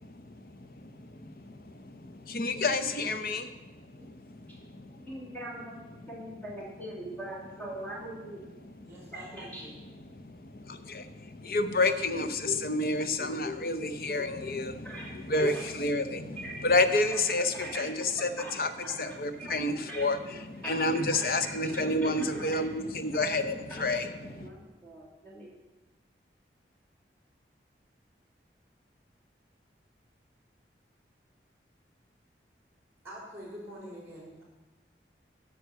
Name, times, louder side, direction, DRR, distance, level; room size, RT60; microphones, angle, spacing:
voice 1, 0.0-5.1 10.0-24.5, left 2 dB, 55° left, 10 dB, 0.6 m, -30 dB
voice 2, 4.9-8.4 9.4-9.6 14.8-15.1 15.5-15.7 16.4-16.7 17.1-17.2 17.5-17.8 18.4-18.5 18.8-18.9 19.4-19.5 19.9-20.0 20.6-22.5 23.2-23.3 23.8-24.0 24.3-25.5, right 1 dB, 10° left, -6 dB, 2.7 m, -42 dB
voice 3, 8.9-9.8 33.0-34.4, equal, 15° right, -4 dB, 3.6 m, -45 dB
9.3 x 5.4 x 6.8 m, 1.1 s
head